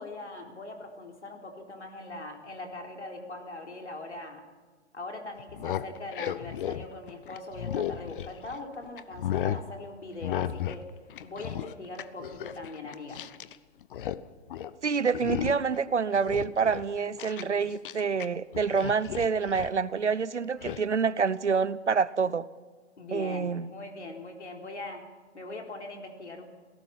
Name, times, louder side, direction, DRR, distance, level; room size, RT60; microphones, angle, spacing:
voice 1, 0.0-4.4 4.9-10.9 11.2-13.2 17.4-17.5 23.0-26.4, left 2 dB, 80° left, 2 dB, 4.0 m, -41 dB
sound 1, 5.4-8.6 9.0-9.7 10.2-10.8 11.1-13.6 13.8-14.2 14.5-14.8 15.1-15.8 16.1-18.3 18.5-19.8 20.6-20.8, left 10 dB, 50° left, 0.9 m, -34 dB
voice 2, 14.8-22.5 23.1-23.7, right 5 dB, 85° right, 18 dB, 1.0 m, -27 dB
27.0 x 18.0 x 5.9 m, 1.4 s
figure-of-eight pair, 120°, 34 cm